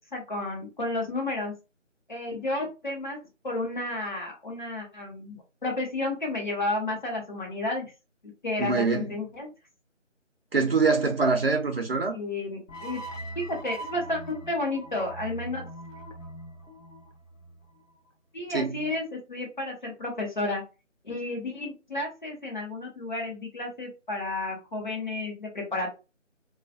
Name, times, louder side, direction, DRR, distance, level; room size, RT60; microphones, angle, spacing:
voice 1, 0.1-1.5 2.1-3.2 3.4-7.9 8.4-9.5 12.1-13.0 13.3-15.7 18.3-20.6 21.0-26.0, left 2 dB, 40° left, 0.9 m, -32 dB
voice 2, 8.6-9.1 10.5-12.2 18.5-18.8, right 4 dB, 50° right, 0.5 m, -24 dB
sound 1, 12.7-17.9, right 1 dB, 75° left, 0.7 m, -41 dB
2.3 x 2.1 x 2.5 m
figure-of-eight pair, 160°, 38 cm